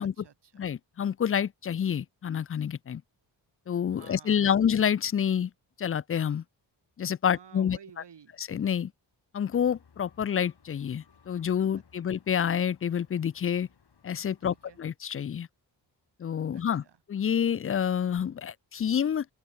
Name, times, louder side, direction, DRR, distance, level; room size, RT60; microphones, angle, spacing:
voice 1, 0.0-0.6 3.9-4.6 7.3-8.4 11.7-11.8 14.4-14.8 16.5-17.0, right 7 dB, 60° right, 2.4 m, -53 dB
voice 2, 0.6-3.0 3.7-5.5 5.8-6.4 7.0-7.8 8.4-8.9 9.3-13.7 14.0-15.5 16.2-19.2, left 8 dB, 30° left, 0.4 m, -28 dB
sound 1, 9.5-14.9, left 6 dB, 55° left, 5.1 m, -62 dB
open air
cardioid pair, 65°, 46 cm